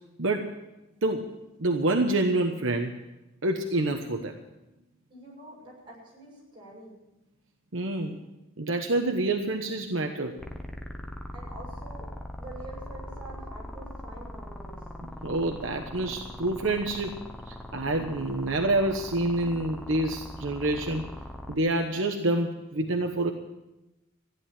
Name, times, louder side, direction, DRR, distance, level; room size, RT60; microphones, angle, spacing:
voice 1, 0.2-0.5 1.0-1.3 1.6-2.9 3.4-4.3 7.7-8.2 8.6-10.3 15.2-17.2 17.5-21.1 21.5-23.3, right 2 dB, 70° right, 3 dB, 1.1 m, -27 dB
voice 2, 5.1-7.0 11.3-12.1 12.4-14.9, right 2 dB, 25° right, -4 dB, 7.4 m, -46 dB
sound 1, 10.4-21.6, left 1 dB, ahead, 1.1 m, -41 dB
15.0 x 10.5 x 7.4 m, 0.97 s
head